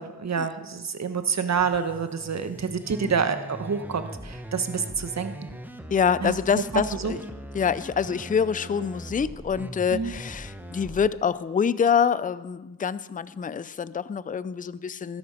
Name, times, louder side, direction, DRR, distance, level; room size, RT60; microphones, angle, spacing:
voice 1, 0.0-5.3 6.2-6.3 6.9-7.2 9.9-10.1, right 6 dB, 40° right, 9 dB, 1.3 m, -27 dB
sound 1, 1.6-11.1, right 1 dB, 5° right, 1.2 m, -40 dB
voice 2, 5.9-7.2 7.5-15.2, left 7 dB, 20° left, 17 dB, 0.5 m, -26 dB
12.5 x 11.5 x 5.1 m, 1.1 s
cardioid pair, 60°, 40 cm